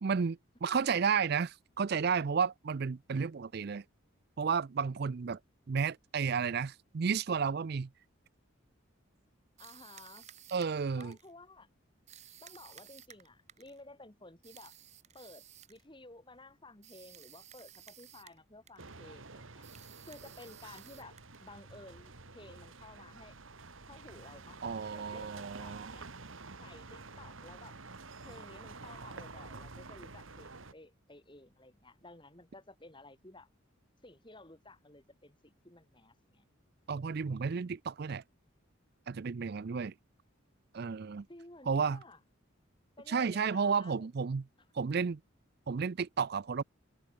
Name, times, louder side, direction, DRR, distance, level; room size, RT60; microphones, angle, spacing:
voice 1, 0.0-3.8 4.4-5.4 5.7-7.9 10.5-11.2 24.6-25.9 36.9-38.2 39.1-39.9 40.7-41.3 41.7-42.0 43.1-44.4 44.7-45.2 45.7-46.6, right 6 dB, 50° right, 0.4 m, -32 dB
voice 2, 9.6-10.3 10.9-11.7 12.4-14.7 15.1-15.4 15.7-19.7 20.1-23.4 23.9-26.1 26.6-27.7 28.2-33.5 34.0-36.4 41.3-42.2 43.0-44.1, left 2 dB, 25° left, 2.7 m, -54 dB
sound 1, 9.6-11.3 12.1-13.8 14.4-15.8 16.8-18.4 18.7-19.0 19.6-21.5, right 10 dB, 35° right, 1.6 m, -55 dB
sound 2, 18.8-30.7, right 3 dB, 70° right, 2.0 m, -49 dB
head